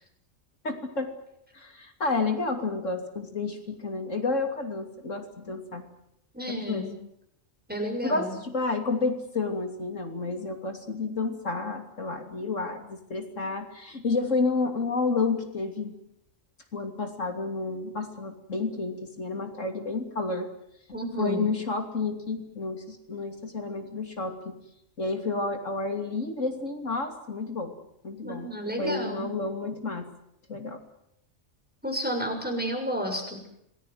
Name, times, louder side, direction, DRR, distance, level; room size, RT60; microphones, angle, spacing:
voice 1, 0.6-1.1 1.5-5.8 6.5-6.9 8.0-15.9 16.7-20.5 21.2-24.5 25.0-27.7 28.0-28.5 28.8-30.1 30.5-30.8, left 3 dB, 75° left, 5 dB, 3.2 m, -30 dB
voice 2, 6.3-6.9 7.7-8.3 20.9-21.5 28.2-29.3 31.8-33.4, equal, 5° right, 3 dB, 7.1 m, -31 dB
27.0 x 20.0 x 9.4 m, 0.76 s
omnidirectional pair, 1.3 m